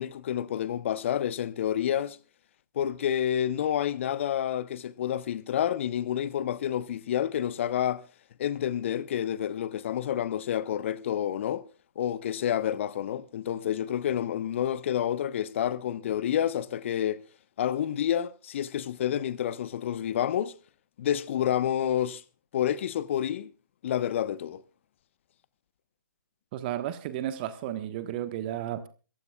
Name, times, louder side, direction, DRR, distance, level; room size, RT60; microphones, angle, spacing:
voice 1, 0.0-2.2 2.7-8.0 8.4-11.7 12.0-17.2 17.6-20.5 21.0-22.2 22.5-23.5 23.8-24.6, left 10 dB, 35° left, 1.0 m, -29 dB
voice 2, 26.5-28.9, right 12 dB, 25° right, 1.2 m, -33 dB
27.0 x 15.0 x 2.3 m
figure-of-eight pair, 140°, 11 cm